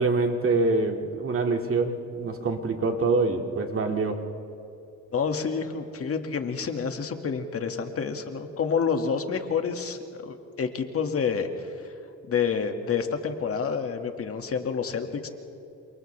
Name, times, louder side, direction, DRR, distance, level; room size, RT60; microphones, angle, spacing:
voice 1, 0.0-4.2, right 3 dB, 45° right, 3 dB, 2.2 m, -25 dB
voice 2, 5.1-11.7 12.3-15.3, left 6 dB, 50° left, 5 dB, 1.9 m, -28 dB
29.0 x 28.0 x 3.4 m, 2.7 s
cardioid pair, 90°, 30 cm